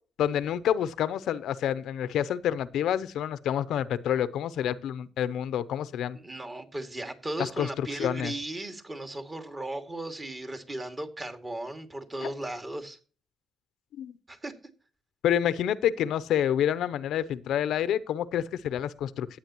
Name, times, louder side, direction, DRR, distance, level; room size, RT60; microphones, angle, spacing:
voice 1, 0.2-6.2 7.6-8.3 12.2-12.3 13.9-14.1 15.2-19.4, left 10 dB, 80° left, 0.6 m, -28 dB
voice 2, 6.1-13.0 14.3-14.5, right 1 dB, 25° right, 2.2 m, -36 dB
14.5 x 8.6 x 3.0 m
cardioid pair, 90°, 0 cm